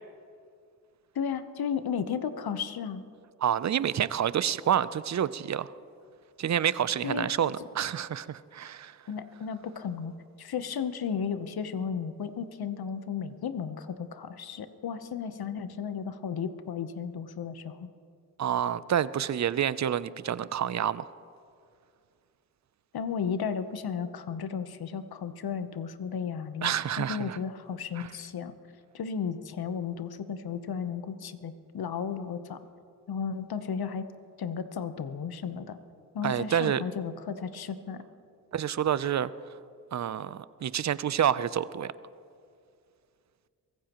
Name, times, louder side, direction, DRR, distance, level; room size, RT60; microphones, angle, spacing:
voice 1, 1.1-3.0 7.0-7.3 9.1-10.1 10.4-17.9 22.9-28.5 28.9-32.6 33.1-34.0 34.4-35.8 36.1-38.0, left 7 dB, 65° left, 11 dB, 1.0 m, -34 dB
voice 2, 3.4-5.7 6.4-9.0 18.4-21.1 26.6-27.4 28.0-28.1 36.2-36.8 38.5-39.3 39.9-41.9, right 9 dB, 45° right, 17 dB, 0.6 m, -28 dB
23.5 x 15.5 x 3.0 m, 2.3 s
cardioid pair, 55°, 40 cm